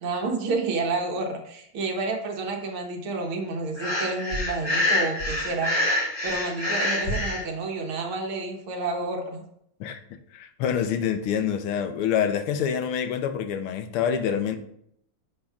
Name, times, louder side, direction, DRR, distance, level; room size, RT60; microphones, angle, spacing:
voice 1, 0.0-5.7 6.2-9.4, right 3 dB, 75° right, 2.0 m, -30 dB
Breathing, 3.8-7.4, left 1 dB, 35° left, 2.3 m, -26 dB
voice 2, 10.3-14.6, left 8 dB, 80° left, 1.6 m, -26 dB
9.5 x 6.7 x 2.4 m
omnidirectional pair, 2.4 m